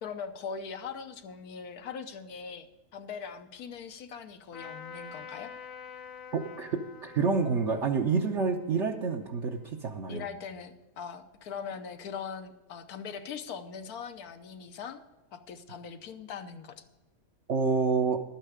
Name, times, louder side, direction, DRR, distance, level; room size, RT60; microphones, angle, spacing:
voice 1, 0.0-5.5 10.1-15.0 15.3-16.8, left 6 dB, 80° left, 7 dB, 1.4 m, -41 dB
Trumpet, 4.5-10.0, left 6 dB, 65° left, 1.5 m, -47 dB
voice 2, 6.3-10.3 17.5-18.2, right 5 dB, 55° right, 1 dB, 1.0 m, -28 dB
12.0 x 9.0 x 5.0 m, 1.1 s
omnidirectional pair, 1.6 m